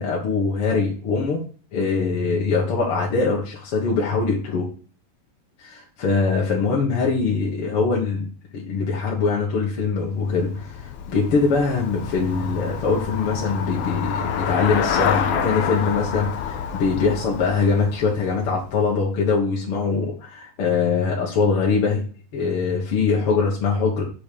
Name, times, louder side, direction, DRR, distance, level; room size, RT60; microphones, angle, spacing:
voice 1, 0.0-1.4 1.7-4.7 5.6-22.0 22.3-24.0, left 4 dB, 50° left, -3 dB, 2.1 m, -22 dB
Traffic noise roadway noise / Bicycle, 9.9-19.1, left 7 dB, 90° left, 1.3 m, -28 dB
7.0 x 5.5 x 6.9 m, 0.39 s
omnidirectional pair, 4.0 m